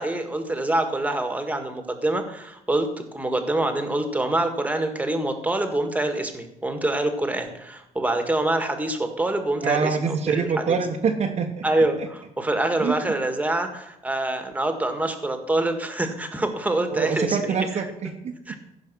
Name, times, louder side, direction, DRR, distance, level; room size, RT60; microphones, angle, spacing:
voice 1, 0.0-10.8 11.6-17.5 18.5-18.6, right 2 dB, 10° right, 6 dB, 1.7 m, -25 dB
voice 2, 9.6-12.1 12.8-13.1 16.9-18.3, right 5 dB, 50° right, 0 dB, 1.1 m, -25 dB
15.0 x 5.3 x 6.1 m, 0.84 s
cardioid pair, 95°, 15 cm